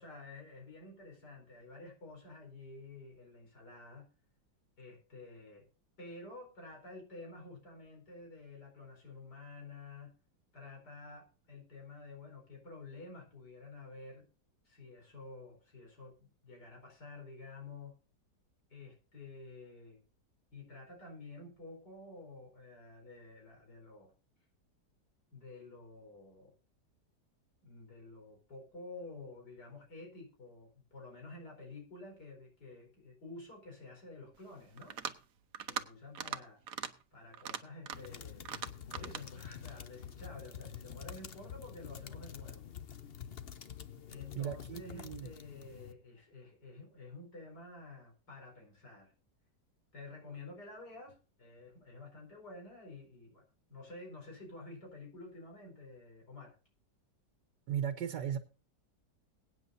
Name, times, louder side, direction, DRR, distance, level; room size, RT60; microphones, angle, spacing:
voice 1, 0.0-4.1 4.8-5.7 6.0-10.1 10.5-14.3 14.7-18.0 18.7-20.0 20.5-24.1 25.3-26.6 27.6-35.0 35.7-36.6 37.1-42.6 44.1-49.1 49.9-53.4 53.7-56.6, left 3 dB, 70° left, 1 dB, 5.2 m, -50 dB
sound 1, 34.8-35.2 35.5-35.9 36.1-36.4 36.7-36.9 37.3-38.1 38.5-39.2, right 8 dB, 60° right, 1.2 m, -40 dB
sound 2, 37.9-45.9, left 8 dB, 45° left, 0.8 m, -48 dB
voice 2, 44.4-45.3 57.7-58.4, right 9 dB, 75° right, 8 dB, 1.6 m, -36 dB
22.0 x 9.3 x 2.7 m, 0.34 s
omnidirectional pair, 1.8 m